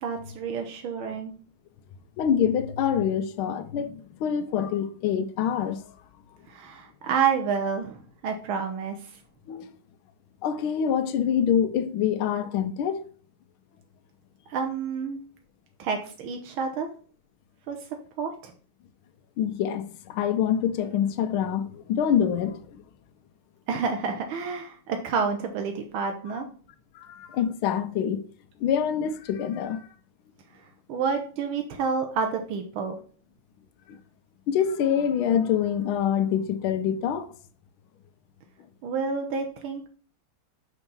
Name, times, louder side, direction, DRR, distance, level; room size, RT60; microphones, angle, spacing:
voice 1, 0.0-1.3 6.5-8.0 8.2-9.1 14.5-15.2 15.8-16.9 17.7-17.8 18.2-18.5 23.7-26.5 30.9-33.0 38.8-39.9, right 5 dB, 85° right, 1.7 m, -29 dB
voice 2, 2.2-5.9 9.5-9.7 10.4-13.0 19.4-22.8 26.9-28.3 28.6-29.9 33.9-34.0 34.5-37.3, left 8 dB, 90° left, 1.5 m, -26 dB
6.3 x 4.5 x 5.4 m
omnidirectional pair, 2.2 m